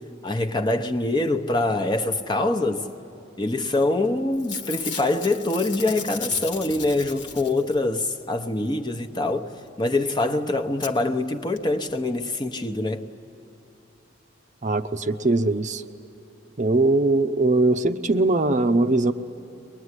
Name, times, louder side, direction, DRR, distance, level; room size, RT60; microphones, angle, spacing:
voice 1, 0.2-2.9 3.4-13.0, left 2 dB, 25° left, 0.9 m, -24 dB
Packing tape duct tape / Tearing, 3.8-4.1 4.3-7.9 9.9-10.0 10.1-10.2 10.8-10.9 11.6-11.7 11.9-12.0, left 6 dB, 70° left, 1.6 m, -35 dB
voice 2, 14.6-15.8 16.6-19.1, right 2 dB, 40° right, 0.7 m, -21 dB
23.0 x 20.5 x 9.7 m
head